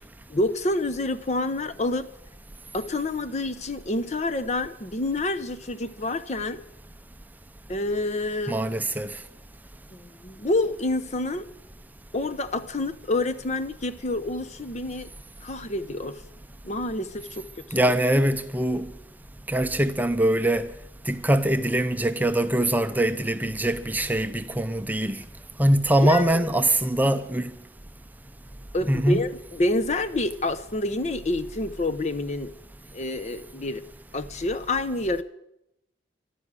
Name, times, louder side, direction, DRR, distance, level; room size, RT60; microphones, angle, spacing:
voice 1, 0.3-2.1 2.7-6.6 7.7-8.6 9.9-11.5 12.1-15.1 15.4-16.2 16.6-17.5 26.0-26.4 28.7-32.5 32.9-33.8 34.1-35.2, left 2 dB, 40° left, 0.8 m, -28 dB
voice 2, 8.5-9.1 17.7-18.9 19.5-20.7 21.1-25.2 25.6-27.5 28.9-29.2, right 1 dB, 10° right, 0.6 m, -23 dB
12.5 x 12.0 x 9.7 m
head